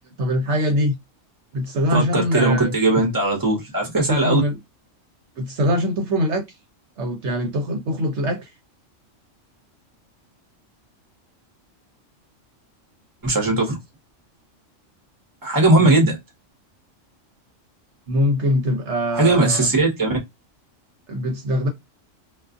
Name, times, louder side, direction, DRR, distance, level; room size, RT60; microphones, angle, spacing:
voice 1, 0.2-1.0 1.5-2.7 4.1-4.6 5.4-6.4 7.0-8.5 15.8-15.9 18.1-19.7 21.1-21.7, equal, 65° right, 0.9 m, -23 dB
voice 2, 1.9-4.4 13.2-13.8 15.4-16.2 19.1-20.2, right 2 dB, 20° right, 0.9 m, -19 dB
2.4 x 2.4 x 2.4 m
omnidirectional pair, 1.3 m